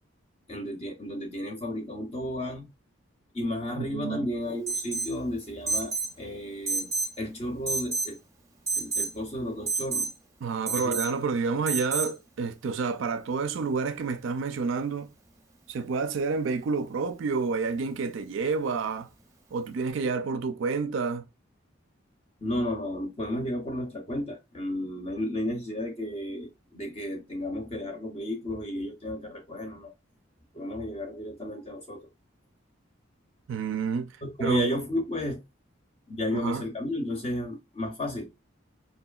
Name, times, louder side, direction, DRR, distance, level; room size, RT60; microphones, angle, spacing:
voice 1, 0.5-2.7 3.3-6.9 7.2-8.2 8.7-10.1 10.7-11.0 22.4-29.9 30.5-32.1 34.2-35.4 36.1-38.3, left 1 dB, 30° left, 0.5 m, -33 dB
voice 2, 3.8-4.2 10.4-15.1 15.7-19.1 19.5-21.2 33.5-34.1 34.4-34.8 36.3-36.6, right 4 dB, 65° right, 0.4 m, -29 dB
Alarm, 4.7-5.2 5.7-6.1 6.7-7.2 7.7-8.1 8.7-9.1 9.7-10.1 10.7-11.1 11.7-12.1, right 4 dB, 15° right, 0.6 m, -29 dB
4.5 x 2.8 x 2.3 m
head